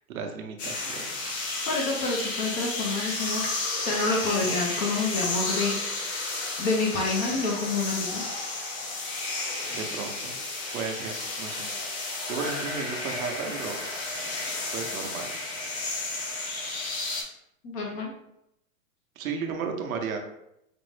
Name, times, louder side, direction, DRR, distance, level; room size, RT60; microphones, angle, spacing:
voice 1, 0.0-1.3 9.7-10.4 10.7-11.7 12.0-13.8 14.7-15.3 19.2-20.2, right 5 dB, 80° right, 4 dB, 0.9 m, -34 dB
sound 1, 0.6-17.2, left 2 dB, 50° left, 1.4 m, -32 dB
voice 2, 1.7-3.4 3.8-5.8 6.6-8.2 17.6-18.1, left 3 dB, 20° left, 0 dB, 0.4 m, -28 dB
5.1 x 2.0 x 3.2 m, 0.80 s
hypercardioid pair, 135°, 41 cm